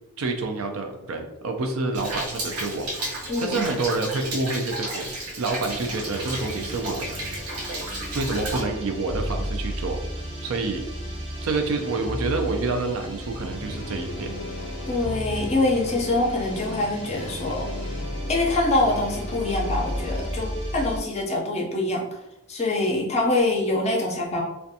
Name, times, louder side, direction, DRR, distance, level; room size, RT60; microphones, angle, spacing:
voice 1, 0.2-5.1 5.4-7.2 8.1-10.0 10.4-10.8 11.4-14.3, right 3 dB, 70° right, 4 dB, 0.4 m, -28 dB
Rain, 1.9-8.6, right 1 dB, 90° right, 0.8 m, -33 dB
voice 2, 3.3-3.6 14.9-17.7 18.3-22.1 22.5-24.4, left 2 dB, 30° left, -1 dB, 0.5 m, -24 dB
sound 1, 5.6-21.1, equal, 20° right, 0.7 m, -34 dB
sound 2, 13.6-20.3, left 2 dB, 85° left, 0.4 m, -38 dB
2.5 x 2.2 x 2.6 m, 0.94 s
head